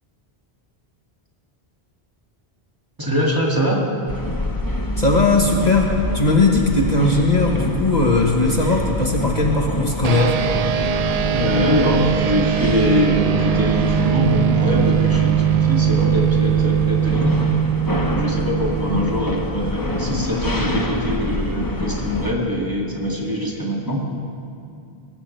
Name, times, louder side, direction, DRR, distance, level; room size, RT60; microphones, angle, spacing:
voice 1, 3.0-3.8 11.3-17.4 18.1-24.0, equal, 20° right, -3 dB, 2.2 m, -23 dB
sound 1, 4.1-22.3, left 1 dB, 20° left, 1.0 m, -27 dB
voice 2, 5.0-10.4 18.9-19.1, left 2 dB, 40° left, 0 dB, 1.3 m, -18 dB
sound 2, 10.0-19.8, right 9 dB, 55° right, 0.4 m, -21 dB
21.0 x 18.5 x 3.3 m, 2.5 s
omnidirectional pair, 1.1 m